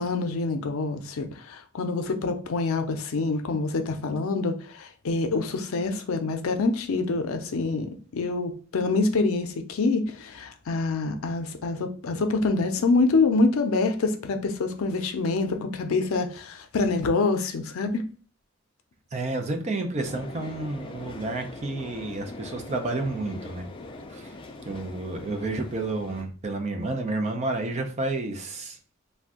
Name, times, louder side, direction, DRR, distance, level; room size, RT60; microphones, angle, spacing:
voice 1, 0.0-18.0, left 3 dB, 90° left, 0.5 m, -26 dB
voice 2, 19.1-23.6 24.1-24.3 24.7-28.8, right 2 dB, 35° right, 0.5 m, -30 dB
sound 1, 20.0-26.2, left 2 dB, 25° left, 0.3 m, -42 dB
2.5 x 2.2 x 3.5 m
head